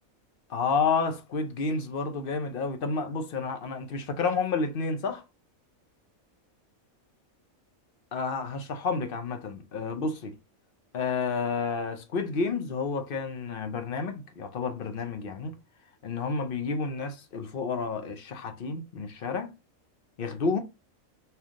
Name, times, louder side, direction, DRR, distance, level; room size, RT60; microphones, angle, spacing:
voice 1, 0.5-5.2 8.1-10.3 10.9-15.6 16.0-19.5 20.2-20.6, left 4 dB, 50° left, 0.7 m, -30 dB
3.4 x 2.9 x 3.6 m
omnidirectional pair, 1.5 m